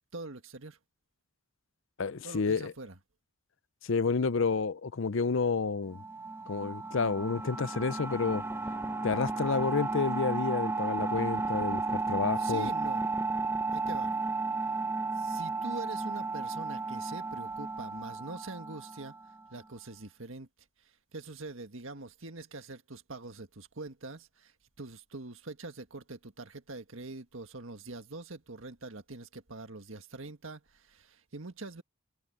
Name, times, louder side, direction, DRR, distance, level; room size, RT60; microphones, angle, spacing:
voice 1, 0.1-0.8 2.2-3.0 12.3-13.0 13.7-14.1 15.1-19.1 19.5-20.5 20.8-31.8, right 2 dB, 65° right, 1.8 m, -44 dB
voice 2, 2.0-2.7 3.8-6.0 6.5-8.4 9.0-12.7, left 4 dB, 60° left, 0.6 m, -30 dB
sound 1, 5.9-19.4, right 3 dB, 10° right, 0.7 m, -33 dB
head